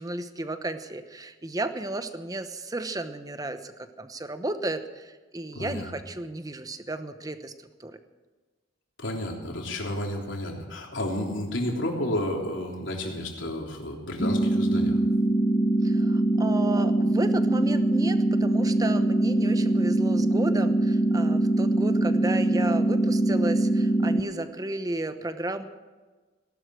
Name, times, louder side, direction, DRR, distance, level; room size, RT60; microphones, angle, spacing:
voice 1, 0.0-7.5 7.8-8.0 15.8-25.6, right 2 dB, 20° right, 9 dB, 0.9 m, -33 dB
voice 2, 5.5-5.9 9.0-15.0, left 1 dB, 80° left, 0 dB, 3.3 m, -31 dB
sound 1, 14.2-24.2, right 2 dB, 40° left, 1.0 m, -23 dB
17.5 x 12.0 x 6.4 m, 1.3 s
head